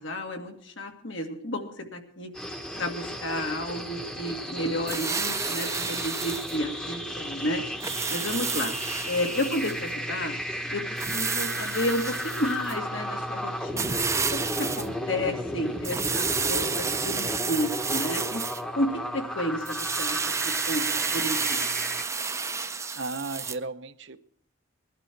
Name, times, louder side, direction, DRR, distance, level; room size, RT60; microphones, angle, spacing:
voice 1, 0.0-2.3 2.8-7.6 8.1-8.8 9.1-10.4 10.7-10.8 11.1-14.0 14.3-18.4 18.8-21.7, left 1 dB, 75° left, 3 dB, 2.2 m, -31 dB
sound 1, 2.3-22.0, equal, 5° left, 1.0 m, -34 dB
sound 2, 4.9-6.6 7.8-9.8 11.0-12.7 13.8-14.9 15.8-18.6 19.7-23.6, right 5 dB, 15° right, 0.6 m, -30 dB
voice 2, 22.9-24.2, right 3 dB, 65° right, 10 dB, 0.8 m, -35 dB
20.5 x 12.0 x 4.6 m, 0.63 s
head